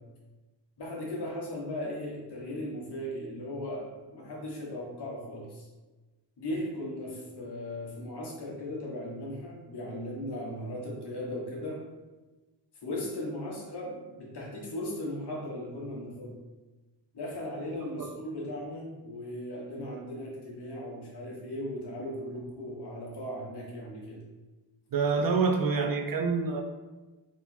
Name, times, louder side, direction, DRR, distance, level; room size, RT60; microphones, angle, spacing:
voice 1, 0.8-5.6 6.4-11.8 12.8-16.3 17.1-24.2, left 1 dB, 65° left, -3 dB, 1.3 m, -37 dB
voice 2, 24.9-26.6, right 4 dB, 50° right, 3 dB, 0.6 m, -26 dB
3.6 x 2.9 x 4.3 m, 1.2 s
cardioid pair, 105°, 44 cm